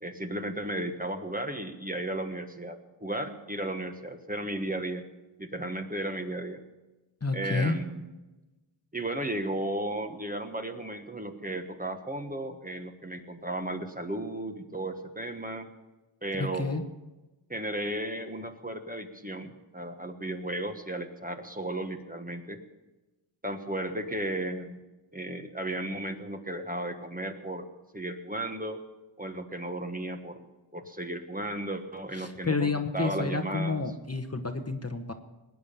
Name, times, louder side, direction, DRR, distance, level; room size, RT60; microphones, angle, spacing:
voice 1, 0.0-5.0 5.4-6.6 7.3-8.1 8.9-15.7 16.2-16.8 17.5-22.6 23.4-24.8 25.1-27.6 27.9-28.8 29.2-33.8, right 1 dB, 15° right, 6 dB, 1.4 m, -34 dB
voice 2, 7.2-7.8 16.4-16.8 32.1-35.1, left 3 dB, 30° left, 7 dB, 1.2 m, -30 dB
20.0 x 9.4 x 7.0 m, 1.1 s
wide cardioid pair, 80°, 49 cm